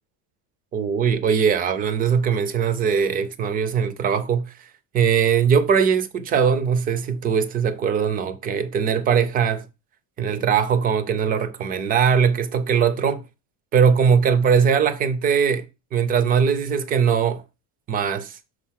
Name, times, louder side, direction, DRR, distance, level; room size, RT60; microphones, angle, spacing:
voice 1, 0.7-4.7 4.9-9.7 10.2-13.2 13.7-15.7 15.9-17.4 17.9-18.4, right 7 dB, 20° right, 0.3 m, -20 dB
6.4 x 4.6 x 5.7 m
cardioid pair, 180°, 47 cm